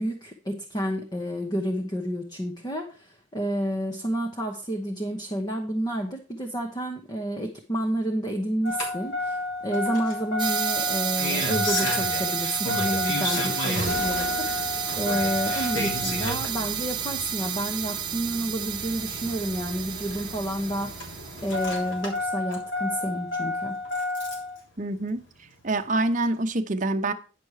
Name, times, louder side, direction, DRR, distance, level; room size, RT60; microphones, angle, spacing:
voice 1, 0.0-14.3 14.6-21.2 21.4-23.8, equal, 20° left, 1.0 m, -30 dB
Engine starting, 8.6-24.6 25.8-25.9, left 2 dB, 70° left, 3.3 m, -31 dB
sound 1, 10.4-21.7, right 10 dB, 25° right, 1.2 m, -31 dB
voice 2, 24.8-25.2 25.6-27.1, right 2 dB, 40° right, 0.9 m, -26 dB
10.0 x 6.1 x 4.9 m
head